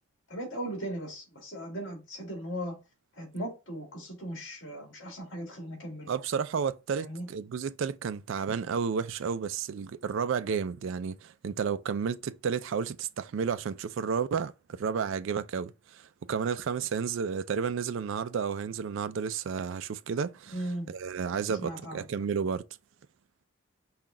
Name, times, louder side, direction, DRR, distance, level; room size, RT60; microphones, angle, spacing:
voice 1, 0.3-2.7 3.2-6.1 7.0-7.3 20.5-20.9 21.6-22.0, right 1 dB, 60° left, 2.3 m, -38 dB
voice 2, 6.1-20.6 20.9-22.6, right 6 dB, 65° right, 0.3 m, -32 dB
5.7 x 2.3 x 3.7 m
head